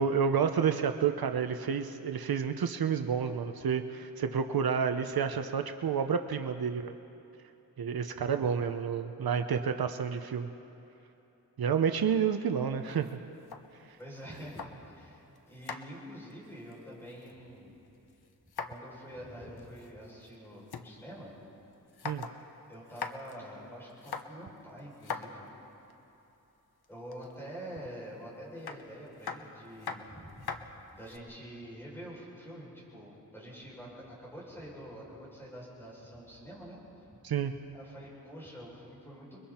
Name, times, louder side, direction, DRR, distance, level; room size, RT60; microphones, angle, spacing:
voice 1, 0.0-6.9 7.8-10.5 11.6-13.1 22.0-22.3 37.2-37.5, right 7 dB, 75° right, 7 dB, 0.8 m, -29 dB
sound 1, 12.8-15.0 15.4-17.6 17.9-19.0 19.2-19.3 19.6-20.9 21.3-21.4 21.7-22.4 22.7-23.4 23.9-25.9 26.8-27.4 28.6-31.2, left 6 dB, 85° left, 1.2 m, -42 dB
voice 2, 14.0-14.6 14.9-17.8 18.7-21.3 22.7-25.5 26.9-30.6 30.9-36.8 37.7-39.4, equal, 5° left, -6 dB, 6.8 m, -46 dB
29.5 x 22.5 x 4.4 m, 3.0 s
wide cardioid pair, 145°, 37 cm